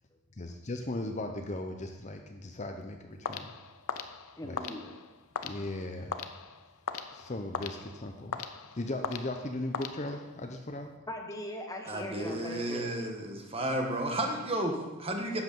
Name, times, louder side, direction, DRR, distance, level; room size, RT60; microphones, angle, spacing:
voice 1, 0.4-3.5 4.4-4.6 5.4-6.2 7.1-10.9, left 2 dB, 30° left, 4 dB, 0.7 m, -37 dB
sound 1, 3.2-10.5, left 6 dB, 75° left, 0.7 m, -40 dB
voice 2, 4.4-4.9 11.1-12.9, left 1 dB, 15° left, 3 dB, 1.2 m, -40 dB
voice 3, 11.8-15.4, right 1 dB, 25° right, 2 dB, 1.4 m, -32 dB
12.0 x 8.1 x 5.3 m, 1.2 s
head